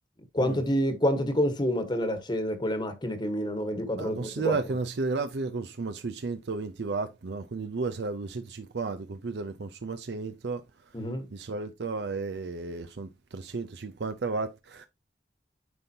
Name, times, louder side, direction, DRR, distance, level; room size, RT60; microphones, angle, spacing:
voice 1, 0.3-4.5 10.9-11.3, equal, 25° left, 1.3 m, -28 dB
voice 2, 4.0-11.0 11.3-14.9, right 3 dB, 70° right, 0.6 m, -33 dB
9.6 x 5.4 x 2.8 m
head